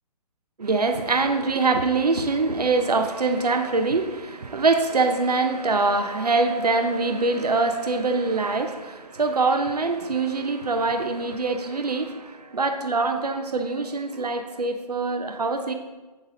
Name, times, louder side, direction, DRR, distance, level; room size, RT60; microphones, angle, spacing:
voice 1, 0.6-15.7, right 3 dB, 70° right, 7 dB, 0.7 m, -24 dB
8.4 x 6.3 x 3.7 m, 1.2 s
figure-of-eight pair, 130°, 21 cm